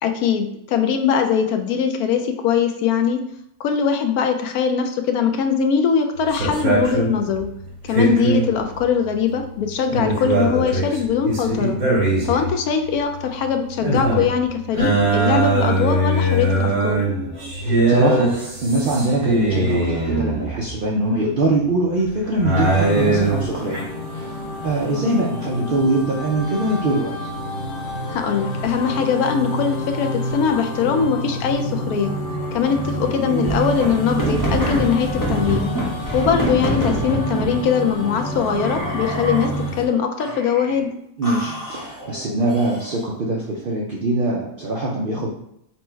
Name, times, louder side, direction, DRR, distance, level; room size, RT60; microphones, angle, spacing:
voice 1, 0.0-3.2 3.6-7.5 7.8-11.8 12.2-17.0 28.1-32.1 32.5-35.7 36.1-40.9, left 7 dB, 85° left, 5 dB, 1.1 m, -21 dB
sound 1, 6.2-20.8 21.7-23.8, right 2 dB, 80° right, 1.9 m, -21 dB
voice 2, 17.6-23.8 24.1-24.3 24.6-27.1 41.2-45.3, right 2 dB, 65° right, -3 dB, 0.5 m, -22 dB
sound 2, 22.5-39.9, equal, 55° left, 0.6 m, -28 dB
sound 3, 33.2-37.6 38.4-39.7 40.2-40.8 41.2-43.1, right 1 dB, 20° left, 0.7 m, -27 dB
4.2 x 2.1 x 4.4 m, 0.76 s
omnidirectional pair, 1.5 m